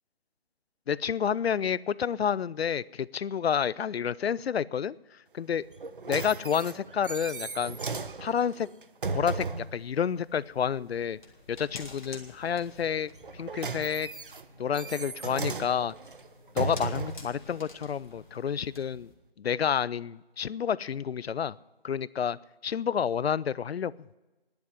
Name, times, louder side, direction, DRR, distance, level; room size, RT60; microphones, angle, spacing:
voice 1, 0.9-5.0 5.3-5.6 6.1-7.8 8.2-8.7 9.1-9.5 9.7-11.2 11.5-14.1 14.6-15.9 16.6-19.1 19.4-21.6 21.8-22.4 22.6-23.9, left 8 dB, 80° left, 21 dB, 0.5 m, -29 dB
sound 1, 5.7-9.8 13.1-17.3 18.1-18.2, right 4 dB, 55° right, 0.6 m, -36 dB
sound 2, 9.3-19.1, left 3 dB, 50° left, 1.9 m, -51 dB
10.5 x 8.3 x 9.4 m, 1.1 s
figure-of-eight pair, 180°, 31 cm